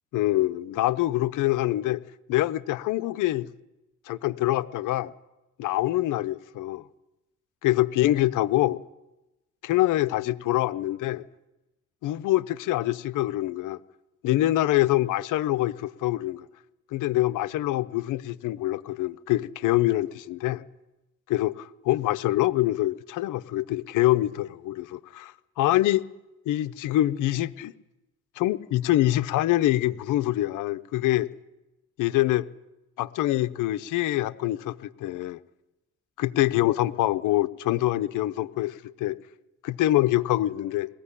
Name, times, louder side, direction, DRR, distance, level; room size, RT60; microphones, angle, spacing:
voice 1, 0.1-2.0 2.3-3.5 4.1-5.1 5.6-6.8 7.6-8.8 9.6-11.2 12.0-13.8 14.2-16.5 16.9-20.6 21.3-26.0 26.5-27.7 28.4-31.3 32.0-32.5 33.0-35.4 36.2-39.2 39.6-40.9, left 15 dB, 90° left, 13 dB, 0.9 m, -25 dB
21.0 x 15.5 x 10.0 m, 0.99 s
cardioid pair, 90°, 30 cm